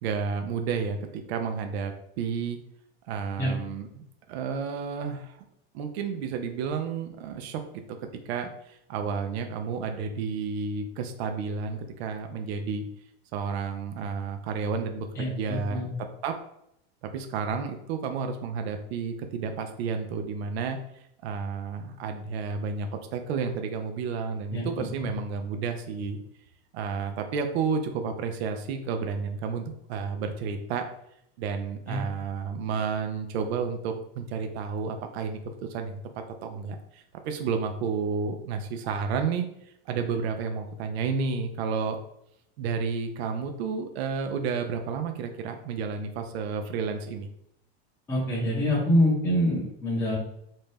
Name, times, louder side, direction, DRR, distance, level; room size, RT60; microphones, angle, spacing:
voice 1, 0.0-2.6 3.1-5.4 5.7-8.0 8.3-12.8 13.3-15.8 16.2-16.4 17.0-20.8 21.2-26.2 26.7-30.9 31.4-35.4 35.7-36.0 36.4-39.5 39.9-42.0 42.6-47.3, right 5 dB, 90° right, 5 dB, 0.5 m, -31 dB
voice 2, 15.2-15.9 24.5-25.1 31.9-32.0 48.1-50.2, equal, 10° left, -6 dB, 0.5 m, -26 dB
2.6 x 2.2 x 3.2 m, 0.76 s
supercardioid pair, 170°, 31 cm